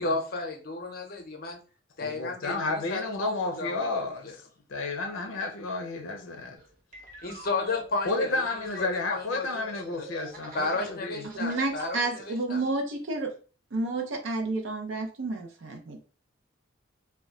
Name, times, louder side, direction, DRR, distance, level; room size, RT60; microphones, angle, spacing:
voice 1, 0.0-1.6 2.0-4.4 7.2-8.5 8.8-10.0 10.5-12.6, left 3 dB, 50° left, 0.7 m, -33 dB
voice 2, 2.0-4.3 4.7-6.6 8.1-11.2, left 3 dB, 80° left, 0.5 m, -31 dB
sound 1, 6.6-11.0 11.3-11.9, right 1 dB, 45° right, 0.7 m, -46 dB
voice 3, 11.4-13.3 13.7-16.0, right 2 dB, 75° right, 0.5 m, -30 dB
2.2 x 2.1 x 3.6 m
head